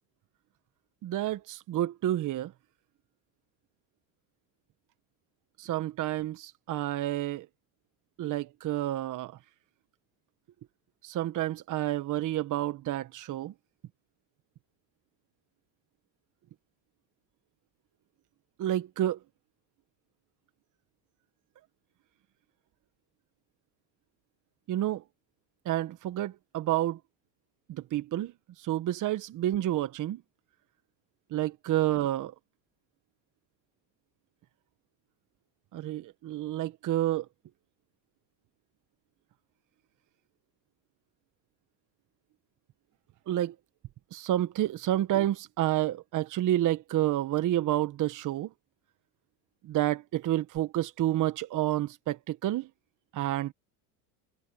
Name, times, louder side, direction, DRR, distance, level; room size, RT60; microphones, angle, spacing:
voice 1, 1.0-2.5 5.6-7.5 8.2-9.4 11.0-13.5 18.6-19.2 24.7-25.0 25.6-27.0 27.7-28.3 28.6-30.2 31.3-32.3 35.7-37.3 43.3-43.5 44.1-48.5 49.6-52.7 53.1-53.5, right 13 dB, 45° right, 1.3 m, -29 dB
open air
supercardioid pair, 105°, 44 cm